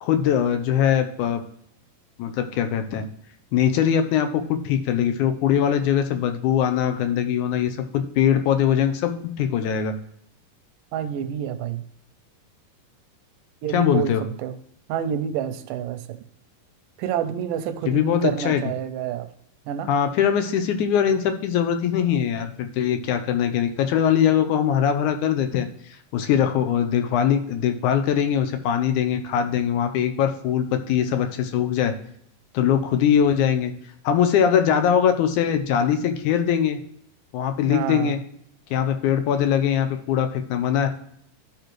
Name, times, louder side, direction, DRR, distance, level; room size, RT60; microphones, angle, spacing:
voice 1, 0.0-1.4 2.2-3.1 3.5-9.1 9.4-9.9 13.7-14.2 17.9-18.6 19.9-25.7 26.1-31.9 32.5-33.7 34.0-36.8 37.3-38.2 38.7-40.9, left 9 dB, 75° left, 8 dB, 2.0 m, -21 dB
voice 2, 10.9-11.8 13.6-14.1 14.4-14.6 14.9-16.2 17.0-19.3 19.7-19.9 37.7-38.2, right 9 dB, 85° right, 11 dB, 2.2 m, -28 dB
13.0 x 5.2 x 3.1 m, 0.70 s
omnidirectional pair, 3.9 m